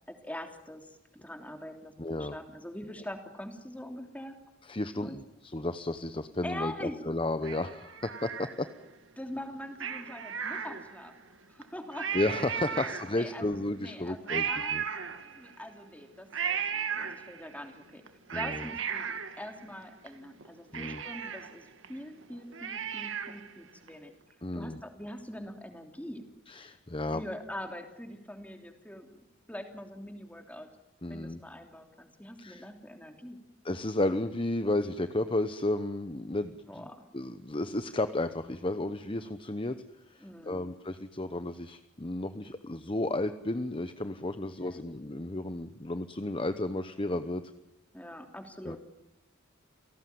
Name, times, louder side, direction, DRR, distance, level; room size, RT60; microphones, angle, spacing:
voice 1, 0.1-4.4 5.0-5.2 6.4-7.0 9.2-11.1 11.5-12.2 12.7-12.9 13.1-14.8 15.2-18.0 18.3-24.1 24.5-26.2 27.1-29.2 29.5-30.7 31.1-33.4 36.6-37.1 40.2-40.6 44.4-44.8 47.9-48.8, left 1 dB, 5° left, 5 dB, 3.1 m, -43 dB
voice 2, 2.0-2.4 4.7-8.7 12.1-14.4 14.7-14.8 18.3-18.6 20.7-21.0 24.4-24.8 26.5-27.2 31.0-31.4 32.4-32.7 33.6-36.8 37.1-39.8 40.1-47.4 48.6-48.8, left 2 dB, 25° left, 10 dB, 0.9 m, -33 dB
Cat, 7.4-8.9 9.7-11.2 11.6-11.7 11.9-13.4 14.3-15.6 16.3-17.6 18.1-20.1 20.4-20.5 20.7-23.5 23.9-24.0, right 7 dB, 60° right, 2.1 m, -36 dB
28.5 x 18.0 x 9.4 m, 0.94 s
head